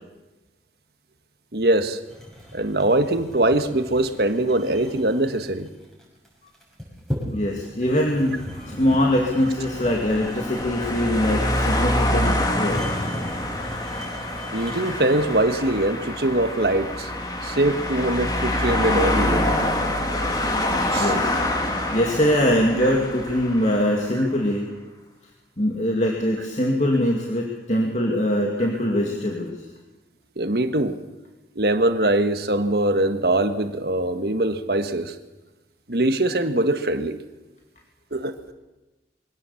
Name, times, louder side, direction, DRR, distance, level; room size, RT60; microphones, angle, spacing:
voice 1, 1.5-2.0 2.5-5.7 14.5-17.1 17.4-19.5 20.9-21.1 30.4-31.0 31.5-35.1 35.9-37.2 38.1-38.3, right 1 dB, 60° right, 9 dB, 1.5 m, -22 dB
sound 1, 2.1-15.4, equal, ahead, 6.4 m, -38 dB
voice 2, 7.3-12.8 20.6-21.4 21.9-24.7 25.6-29.6, left 1 dB, 40° left, 0 dB, 2.4 m, -22 dB
sound 2, 8.7-24.1, left 1 dB, 20° left, 2.3 m, -26 dB
23.0 x 17.5 x 7.2 m, 1.1 s
head